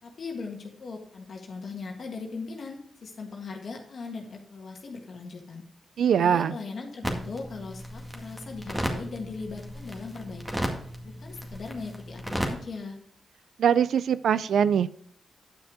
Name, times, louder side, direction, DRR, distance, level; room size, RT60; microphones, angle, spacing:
voice 1, 0.0-5.7 6.1-10.7 11.0-12.9, left 4 dB, 65° left, 1 dB, 1.6 m, -39 dB
voice 2, 6.0-6.5 13.6-14.9, right 8 dB, 80° right, 16 dB, 0.4 m, -22 dB
sound 1, 7.0-12.5, equal, 10° right, 2.0 m, -34 dB
9.8 x 5.9 x 4.9 m, 0.62 s
cardioid pair, 60°, 0 cm